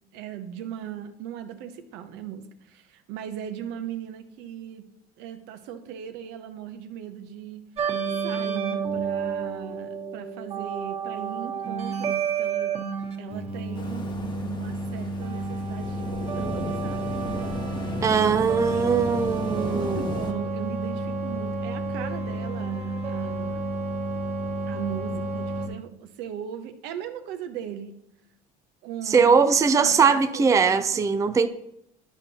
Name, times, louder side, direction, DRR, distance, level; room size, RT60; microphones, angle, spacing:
voice 1, 0.1-4.9 5.2-7.6 8.2-12.7 13.2-17.2 18.7-19.2 19.7-23.7 24.7-28.0 28.8-31.1 31.4-31.5, right 9 dB, 70° right, 0.9 m, -38 dB
sound 1, 7.8-25.7, right 4 dB, 35° right, 1.6 m, -30 dB
sound 2, 13.8-20.3, left 3 dB, 25° left, 1.1 m, -36 dB
voice 2, 18.0-20.2 29.1-31.5, right 5 dB, 15° right, 0.5 m, -21 dB
11.5 x 5.4 x 2.9 m
supercardioid pair, 90°, 18 cm